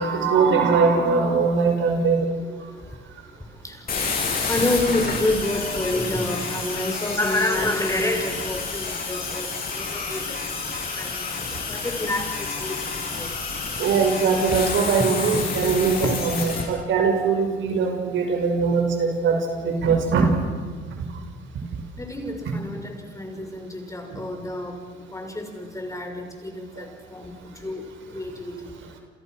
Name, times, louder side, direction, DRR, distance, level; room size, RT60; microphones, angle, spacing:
voice 1, 0.0-2.3 13.8-20.3 21.1-21.2 24.1-24.2 26.8-26.9, right 5 dB, 75° right, 3 dB, 6.0 m, -21 dB
sound 1, 3.9-16.6, left 4 dB, 50° left, 7.9 m, -29 dB
voice 2, 4.5-9.5 9.7-10.5 11.0-11.2 11.7-12.8 13.1-13.3 15.0-15.1 16.0-16.1 22.0-24.8 25.1-27.4 27.6-27.8 28.1-28.7, left 1 dB, 15° left, 4 dB, 5.8 m, -28 dB
29.5 x 28.0 x 6.4 m, 1.5 s
cardioid pair, 90°, 20 cm